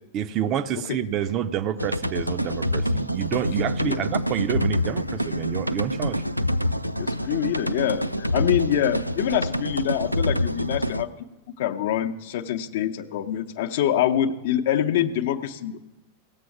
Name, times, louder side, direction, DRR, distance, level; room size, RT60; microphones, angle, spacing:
voice 1, 0.1-6.2, right 10 dB, 35° right, 12 dB, 0.5 m, -28 dB
sound 1, 1.8-11.0, equal, 90° right, 0.4 m, -26 dB
voice 2, 7.0-11.1 11.6-15.8, left 11 dB, 55° left, 8 dB, 0.7 m, -25 dB
17.5 x 7.6 x 5.8 m, 1.1 s
figure-of-eight pair, 90°, 0 cm